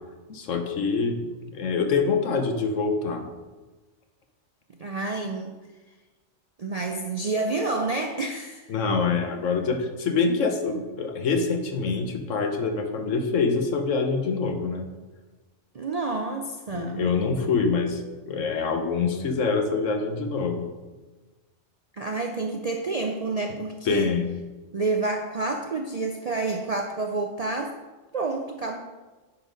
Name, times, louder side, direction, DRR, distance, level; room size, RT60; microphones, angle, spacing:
voice 1, 0.3-3.3 8.7-14.9 16.7-20.7 23.9-24.4, left 4 dB, 75° left, 6 dB, 1.2 m, -25 dB
voice 2, 4.7-5.6 6.6-8.7 15.7-17.1 17.4-17.6 21.9-24.1 24.7-27.8 28.1-28.8, right 3 dB, 55° right, 3 dB, 0.4 m, -29 dB
9.7 x 4.0 x 5.1 m, 1.2 s
omnidirectional pair, 1.3 m